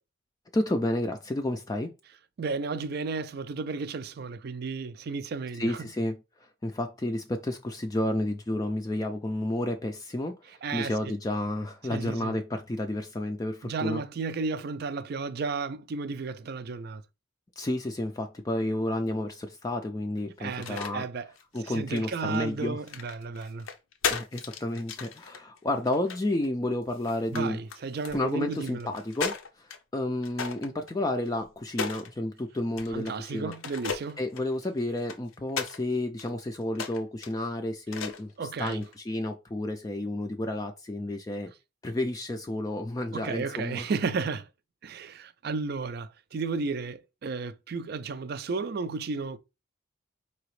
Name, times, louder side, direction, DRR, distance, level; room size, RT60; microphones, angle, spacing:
voice 1, 0.5-1.9 5.5-6.2 6.6-14.0 17.6-21.0 21.5-22.8 24.1-27.6 28.1-33.5 34.2-41.5 41.8-43.9, left 1 dB, 20° left, 0.3 m, -31 dB
voice 2, 2.4-5.9 10.6-10.9 11.9-12.4 13.6-17.0 20.4-21.3 21.6-23.7 27.3-28.9 32.9-34.2 38.4-38.8 43.1-44.5 44.8-49.4, right 4 dB, 50° right, 0.4 m, -33 dB
sound 1, 20.4-20.9 21.4-22.4 22.9-26.5 26.9-27.4 27.7-29.8 30.2-32.1 32.8-33.2 33.5-35.8 36.2-36.3 36.7-37.3 37.9-38.3 38.7-38.9, left 6 dB, 85° left, 0.6 m, -36 dB
4.8 x 2.9 x 3.1 m
head